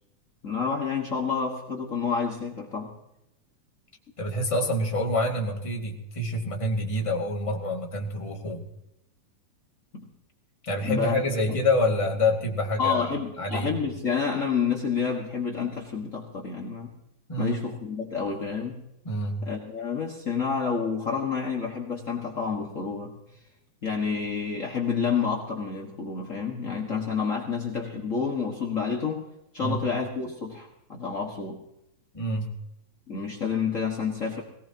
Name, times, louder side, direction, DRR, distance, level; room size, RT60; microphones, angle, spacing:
voice 1, 0.4-2.9 9.9-10.1 10.8-11.2 11.5-11.6 12.8-16.9 17.4-18.8 19.4-23.1 23.8-29.3 29.5-31.6 33.1-34.4, left 6 dB, 65° left, -1 dB, 0.7 m, -29 dB
voice 2, 4.2-8.6 10.6-13.8 17.3-17.6 19.0-19.4 29.6-29.8 32.1-32.5, left 1 dB, 15° left, 0 dB, 1.2 m, -27 dB
20.0 x 18.0 x 2.9 m, 0.85 s
omnidirectional pair, 4.2 m